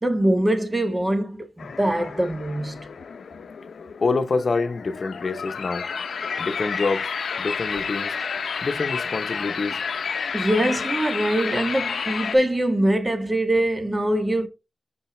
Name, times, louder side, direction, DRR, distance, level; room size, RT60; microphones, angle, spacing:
voice 1, 0.0-2.9 10.3-14.5, right 1 dB, 25° right, 1.4 m, -23 dB
sound 1, 1.6-12.4, left 6 dB, 90° left, 0.5 m, -30 dB
voice 2, 4.0-5.9 6.4-7.1 7.4-8.2 8.6-9.8, left 3 dB, 60° left, 0.8 m, -26 dB
5.6 x 5.5 x 3.2 m
cardioid pair, 60°, 0 cm